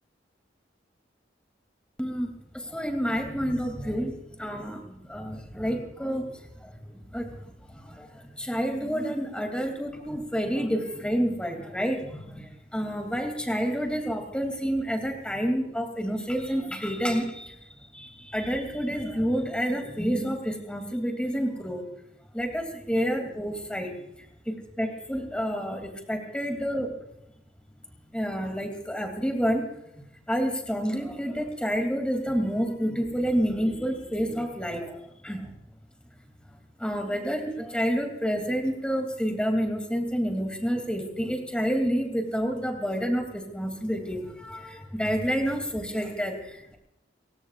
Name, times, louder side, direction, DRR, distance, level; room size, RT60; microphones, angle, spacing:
voice 1, 2.5-6.7 7.1-7.3 7.7-17.5 17.9-21.9 22.3-23.9 24.5-26.9 28.1-29.7 30.3-35.5 36.8-46.8, equal, 5° left, 3 dB, 2.7 m, -29 dB
29.5 x 16.0 x 2.5 m, 0.85 s
head